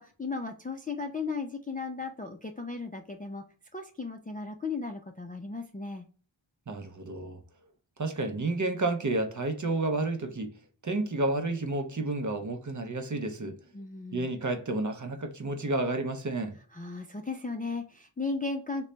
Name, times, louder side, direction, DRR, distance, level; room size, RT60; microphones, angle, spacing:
voice 1, 0.0-3.4 3.7-6.1 13.7-14.3 16.7-18.9, left 4 dB, 20° left, 0.3 m, -36 dB
voice 2, 6.7-7.4 8.0-10.5 10.8-13.6 14.1-16.6, right 2 dB, 40° right, 0.6 m, -30 dB
3.1 x 2.2 x 3.7 m
wide cardioid pair, 65°, 49 cm